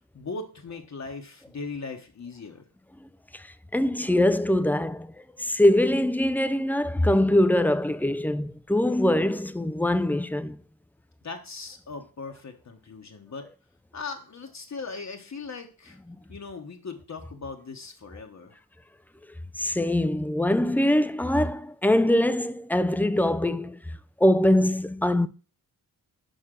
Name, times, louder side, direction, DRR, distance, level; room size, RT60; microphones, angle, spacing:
voice 1, 0.1-2.7 11.2-13.4 13.9-16.0 16.3-18.6, left 4 dB, 45° left, 1.0 m, -39 dB
voice 2, 3.7-5.1 5.4-10.6 19.6-23.8 24.2-25.3, left 1 dB, 5° left, 0.4 m, -23 dB
6.5 x 5.5 x 3.7 m
wide cardioid pair, 100°, 38 cm